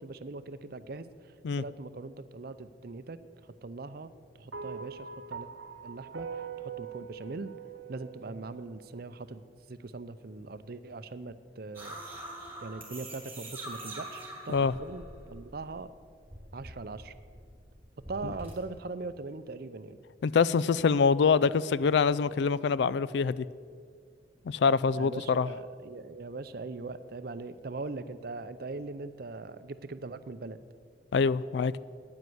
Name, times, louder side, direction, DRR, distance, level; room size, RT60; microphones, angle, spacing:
voice 1, 0.0-5.5 5.8-7.5 7.9-9.4 9.7-12.0 12.6-15.9 16.5-17.1 18.1-20.0 24.9-30.6, right 3 dB, 55° right, 13 dB, 0.6 m, -41 dB
sound 1, 4.5-8.9, right 6 dB, 80° right, 1.0 m, -42 dB
sound 2, 11.7-15.8 16.1-18.5, right 1 dB, 15° right, 2.9 m, -44 dB
voice 2, 20.2-23.5 24.5-25.5 31.1-31.8, left 5 dB, 65° left, 19 dB, 0.3 m, -25 dB
9.7 x 9.6 x 7.9 m, 2.1 s
head